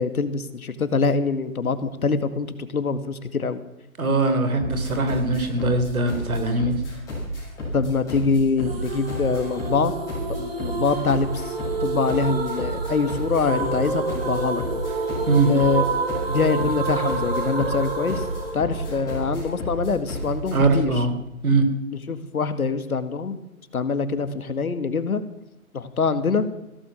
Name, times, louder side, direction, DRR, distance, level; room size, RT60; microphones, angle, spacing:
voice 1, 0.0-3.6 7.7-9.9 10.3-14.6 15.5-15.8 16.3-18.2 18.5-20.9 22.1-23.4 23.7-25.2 25.7-26.5, left 4 dB, 75° left, 11 dB, 2.0 m, -24 dB
voice 2, 4.0-6.8 15.3-15.5 20.5-21.1 21.4-21.6, right 3 dB, 75° right, 8 dB, 3.7 m, -21 dB
sound 1, 4.6-20.9, equal, 10° left, 6.8 m, -32 dB
sound 2, 8.7-19.6, right 3 dB, 40° right, 2.9 m, -29 dB
16.5 x 14.0 x 6.4 m, 0.90 s
hypercardioid pair, 170°, 43 cm